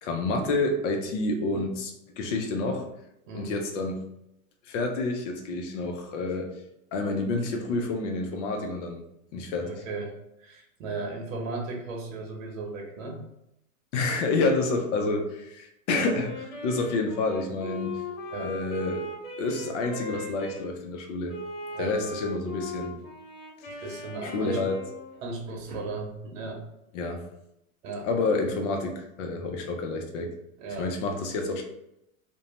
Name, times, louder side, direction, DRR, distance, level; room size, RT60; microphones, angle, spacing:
voice 1, 0.0-2.9 3.3-4.1 4.7-6.6 6.9-9.0 9.3-9.8 13.9-18.0 18.4-19.1 19.4-21.3 21.8-23.0 24.2-24.8 26.9-27.2 28.0-30.3 30.8-31.6, left 3 dB, 60° left, 3 dB, 0.7 m, -29 dB
voice 2, 9.6-10.1 10.4-13.2 18.3-18.6 20.1-20.2 21.7-22.0 23.8-24.6 25.2-26.6 27.8-28.1 30.6-30.9, right 3 dB, 70° right, 2 dB, 0.8 m, -36 dB
Wind instrument woodwind instrument, 15.9-20.6 21.3-25.2, left 3 dB, 75° left, 1.1 m, -39 dB
2.6 x 2.2 x 3.0 m, 0.83 s
hypercardioid pair, 120°, 41 cm